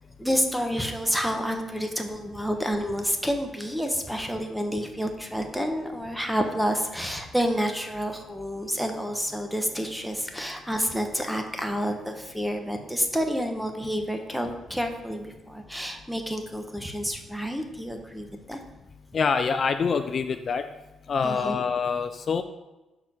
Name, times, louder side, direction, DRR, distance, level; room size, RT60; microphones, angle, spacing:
voice 1, 0.2-18.6 21.2-21.6, equal, ahead, 4 dB, 1.0 m, -29 dB
voice 2, 19.1-20.6 21.1-22.4, left 5 dB, 45° left, 8 dB, 0.4 m, -25 dB
5.8 x 4.5 x 6.1 m, 1.0 s
cardioid pair, 90°, 0 cm